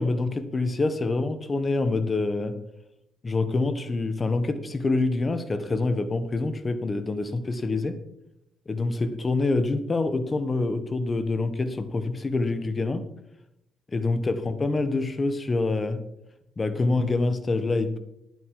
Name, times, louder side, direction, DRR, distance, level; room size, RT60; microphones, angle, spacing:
voice 1, 0.0-2.5 3.2-7.9 8.7-13.0 13.9-16.0 16.6-18.0, left 3 dB, 30° left, 11 dB, 1.3 m, -26 dB
10.5 x 9.5 x 4.8 m, 0.81 s
cardioid pair, 90°, 0 cm